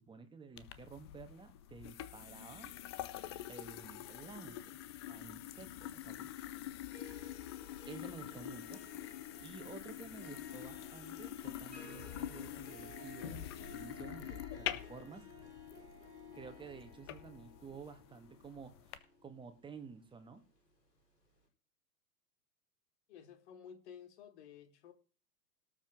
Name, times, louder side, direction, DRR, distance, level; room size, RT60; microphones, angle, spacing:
voice 1, 0.0-2.7 3.5-4.8 5.1-6.5 7.9-8.8 9.4-15.2 16.3-20.4, right 5 dB, 10° right, 8 dB, 1.8 m, -52 dB
sound 1, 0.6-19.0, left 12 dB, 20° left, 0.4 m, -46 dB
Harp, 6.9-20.7, left 2 dB, 80° left, 5.9 m, -56 dB
voice 2, 23.1-24.9, left 8 dB, 45° left, 8 dB, 2.6 m, -53 dB
18.0 x 7.4 x 3.8 m, 0.36 s
figure-of-eight pair, 105°, 48 cm